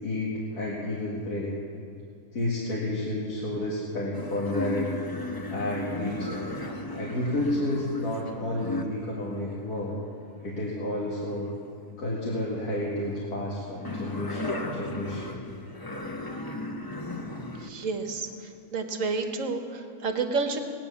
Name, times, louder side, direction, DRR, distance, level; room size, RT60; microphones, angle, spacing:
voice 1, 0.0-1.5 2.3-5.0 5.5-6.5 6.9-10.0 10.4-11.5 12.0-15.3, left 1 dB, 90° left, -5 dB, 2.5 m, -31 dB
sound 1, 4.1-11.8 12.2-17.7 18.2-18.3, left 2 dB, 20° left, 0.7 m, -36 dB
voice 2, 17.6-18.3 18.7-20.6, right 4 dB, 60° right, 6 dB, 1.5 m, -29 dB
18.5 x 10.0 x 7.1 m, 2.4 s
omnidirectional pair, 1.6 m